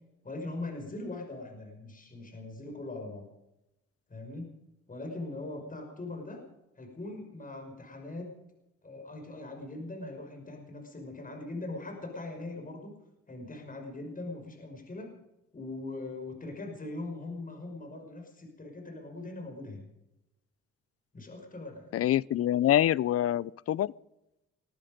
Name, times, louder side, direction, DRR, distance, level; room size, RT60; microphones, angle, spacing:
voice 1, 0.2-3.2 4.1-4.5 4.9-6.4 6.8-8.3 8.8-12.9 13.3-15.1 15.5-19.9 21.1-22.0, left 2 dB, 25° left, 5.8 m, -41 dB
voice 2, 21.9-23.9, left 12 dB, 50° left, 0.5 m, -26 dB
20.5 x 13.0 x 5.2 m
cardioid pair, 90°, 30 cm